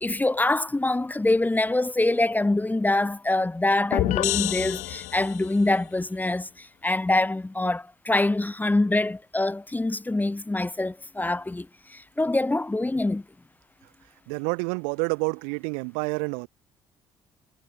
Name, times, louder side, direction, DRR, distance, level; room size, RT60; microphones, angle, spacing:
voice 1, 0.0-11.7 11.9-13.2, left 2 dB, 15° left, 1.1 m, -25 dB
sound 1, 3.9-5.6, left 17 dB, 65° left, 0.8 m, -27 dB
voice 2, 14.3-16.5, right 40 dB or more, 75° right, 1.6 m, -28 dB
hypercardioid pair, 50°, 13 cm